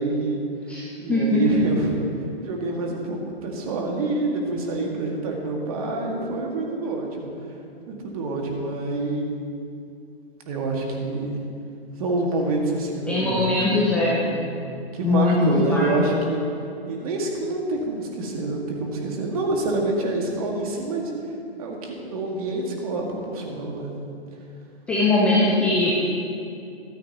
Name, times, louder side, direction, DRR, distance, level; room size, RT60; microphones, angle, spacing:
voice 1, 0.0-2.0 2.4-7.3 7.9-9.3 10.4-11.4 12.0-13.8 14.3-14.5 14.9-16.4 16.9-21.1 21.6-23.9, right 2 dB, 35° right, 0 dB, 2.1 m, -27 dB
voice 2, 1.1-1.6 13.1-14.2 15.0-16.2 24.9-25.9, left 2 dB, 5° left, -6 dB, 0.5 m, -21 dB
14.5 x 13.5 x 3.0 m, 2.5 s
figure-of-eight pair, 125°, 32 cm